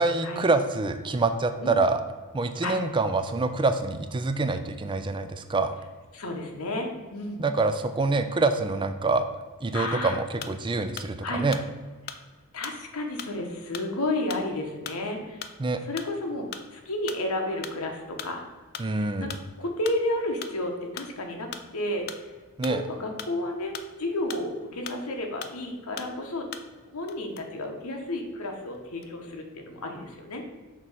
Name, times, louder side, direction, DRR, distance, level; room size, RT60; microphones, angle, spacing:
voice 1, 0.0-2.0 2.3-5.7 7.4-9.3 9.6-11.6 15.6-15.8 18.8-19.3 22.6-22.8, right 3 dB, 20° right, 9 dB, 0.4 m, -26 dB
voice 2, 6.1-7.4 9.7-10.2 11.2-11.4 12.0-12.2 12.5-15.5 15.8-18.4 18.9-19.3 19.6-22.3 22.7-23.7 24.0-26.5 26.9-30.4, left 1 dB, 80° left, 3 dB, 1.1 m, -32 dB
sound 1, 9.9-11.2 11.5-25.2 25.4-26.8 27.1-28.3 28.7-29.3, left 8 dB, 45° left, 0.4 m, -41 dB
6.6 x 3.1 x 5.5 m, 1.4 s
head